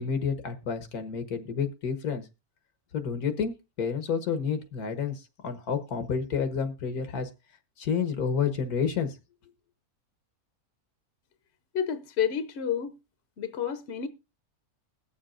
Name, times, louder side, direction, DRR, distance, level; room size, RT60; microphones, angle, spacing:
voice 1, 0.0-2.2 2.9-7.3 7.8-9.1, left 6 dB, 85° left, 1.7 m, -30 dB
voice 2, 11.7-12.9 13.4-14.1, left 8 dB, 55° left, 0.9 m, -29 dB
21.0 x 7.2 x 2.5 m
omnidirectional pair, 1.6 m